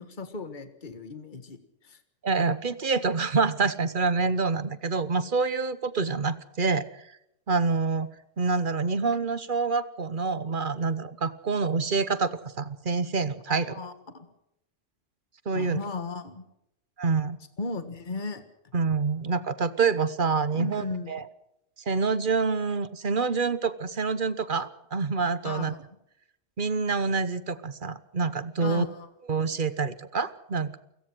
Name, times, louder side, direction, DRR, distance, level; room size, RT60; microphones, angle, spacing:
voice 1, 0.0-2.0 13.5-14.3 15.5-16.5 17.6-18.4 20.5-21.1 25.4-25.9 28.6-29.1, left 3 dB, 40° left, 10 dB, 1.8 m, -36 dB
voice 2, 2.2-7.0 7.5-8.1 8.4-13.7 15.4-15.8 17.0-17.4 18.7-21.2 21.9-25.7 26.6-28.9 29.3-30.8, right 4 dB, 45° right, 15 dB, 1.2 m, -27 dB
29.0 x 17.0 x 6.2 m, 0.80 s
omnidirectional pair, 1.3 m